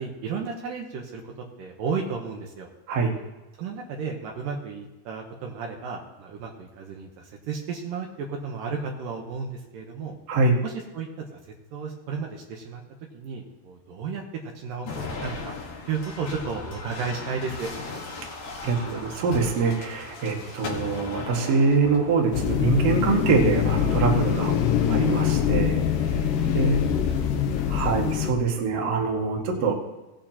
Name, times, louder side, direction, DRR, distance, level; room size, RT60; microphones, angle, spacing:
voice 1, 0.0-2.7 3.6-10.2 10.6-11.3 11.7-12.8 13.1-14.9 15.2-15.5 15.9-17.7 26.4-27.2 27.7-28.0, right 5 dB, 75° right, 1 dB, 2.6 m, -33 dB
sound 1, 14.9-24.2 24.9-25.5 26.6-27.2, left 3 dB, 60° left, 2.9 m, -38 dB
voice 2, 18.6-24.6 24.9-25.8 26.5-26.8 27.7-29.7, right 4 dB, 50° right, 0 dB, 2.2 m, -24 dB
sound 2, 22.3-28.3, left 8 dB, 75° left, 2.4 m, -24 dB
18.0 x 9.0 x 2.9 m, 1.1 s
omnidirectional pair, 4.2 m